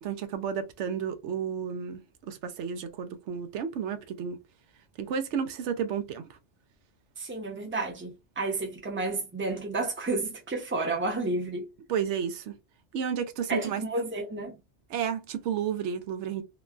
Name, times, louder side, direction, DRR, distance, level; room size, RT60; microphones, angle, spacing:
voice 1, 0.0-4.4 5.0-6.4 11.9-12.5 12.9-13.8 14.9-16.4, right 7 dB, 80° right, 0.9 m, -32 dB
voice 2, 7.2-11.7 13.5-14.6, right 2 dB, 15° right, 0.6 m, -31 dB
3.0 x 2.2 x 2.4 m
omnidirectional pair, 1.2 m